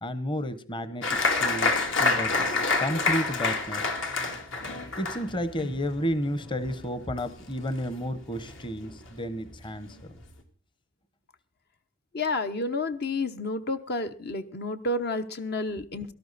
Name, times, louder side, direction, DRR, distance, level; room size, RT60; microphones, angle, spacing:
voice 1, 0.0-2.3 2.8-3.9 5.0-10.0, equal, 25° left, 14 dB, 1.0 m, -32 dB
Applause, 1.0-8.1 8.3-9.1 9.5-9.6 9.9-10.3, left 3 dB, 75° left, 2.5 m, -28 dB
voice 2, 12.1-16.1, left 2 dB, 55° left, 8 dB, 0.9 m, -30 dB
18.0 x 12.5 x 4.1 m, 0.38 s
head